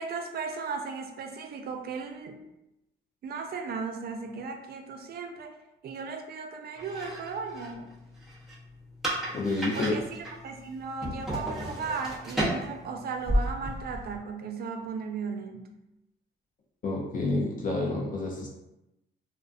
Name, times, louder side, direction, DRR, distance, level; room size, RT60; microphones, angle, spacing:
voice 1, 0.0-2.4 3.2-5.6 5.8-7.9 9.7-15.7, right 5 dB, 50° right, 5 dB, 0.4 m, -36 dB
sound 1, 6.8-14.2, equal, ahead, 0.8 m, -34 dB
voice 2, 9.3-9.9 16.8-18.5, left 2 dB, 45° left, -1 dB, 0.5 m, -29 dB
2.4 x 2.1 x 2.4 m, 0.90 s
cardioid pair, 90°, 20 cm